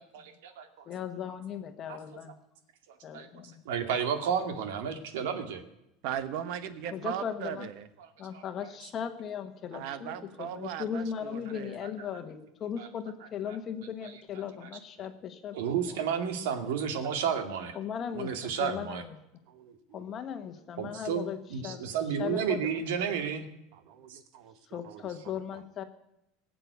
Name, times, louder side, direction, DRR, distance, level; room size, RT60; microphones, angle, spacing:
voice 1, 0.0-0.7 1.9-2.0 3.1-3.3 3.7-5.6 8.3-8.4 11.8-11.9 12.8-12.9 15.5-17.8 18.1-19.0 20.8-23.4 24.1-24.2, right 7 dB, 85° right, 7 dB, 2.2 m, -31 dB
voice 2, 0.9-2.3 3.0-3.7 6.9-7.7 8.2-16.0 17.7-19.2 19.9-21.9 22.2-22.7 24.7-25.8, left 8 dB, 25° left, 8 dB, 1.3 m, -38 dB
voice 3, 6.0-7.9 9.7-11.8 19.5-20.0 23.7-25.0, right 9 dB, 55° right, 12 dB, 1.3 m, -39 dB
20.0 x 7.8 x 8.2 m, 0.85 s
supercardioid pair, 165°, 0 cm